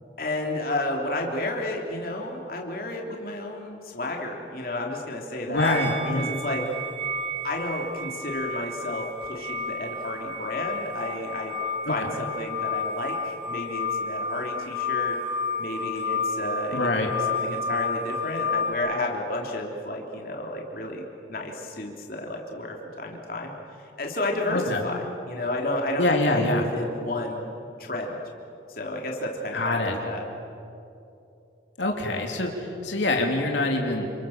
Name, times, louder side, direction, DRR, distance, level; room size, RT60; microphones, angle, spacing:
voice 1, 0.2-6.6 7.4-11.5 11.9-15.2 15.6-21.0 21.3-23.5 23.8-27.5 27.8-28.2 28.7-30.2, left 1 dB, 50° left, 0 dB, 3.3 m, -31 dB
voice 2, 5.5-6.3 11.9-12.0 16.7-17.1 24.5-24.8 26.0-26.6 29.5-29.9 31.8-34.1, left 2 dB, 85° left, 1 dB, 3.2 m, -25 dB
sound 1, 5.6-18.7, left 3 dB, 35° right, 4.1 m, -31 dB
29.0 x 28.0 x 7.3 m, 2.8 s
head